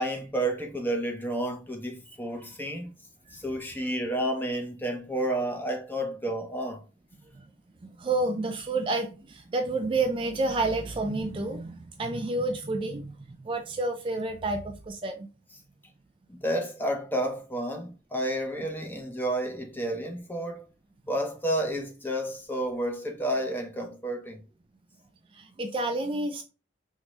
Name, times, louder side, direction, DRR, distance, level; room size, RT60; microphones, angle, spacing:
voice 1, 0.0-2.9 3.3-6.8 16.3-20.7 21.1-24.4, right 1 dB, 10° left, 0.7 m, -31 dB
voice 2, 7.8-15.3 25.3-26.4, right 2 dB, 30° right, 0.4 m, -30 dB
4.6 x 2.7 x 3.0 m
head